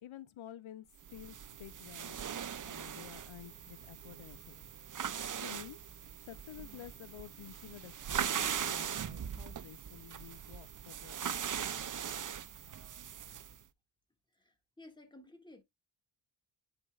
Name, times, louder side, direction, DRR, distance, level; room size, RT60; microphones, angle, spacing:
voice 1, 0.0-4.6 5.4-5.8 6.2-11.4, left 11 dB, 75° left, 0.6 m, -51 dB
sound 1, 1.0-13.6, right 8 dB, 40° right, 0.5 m, -40 dB
voice 2, 14.3-15.6, left 2 dB, 10° left, 1.7 m, -55 dB
10.5 x 4.3 x 2.3 m
wide cardioid pair, 130°, 48 cm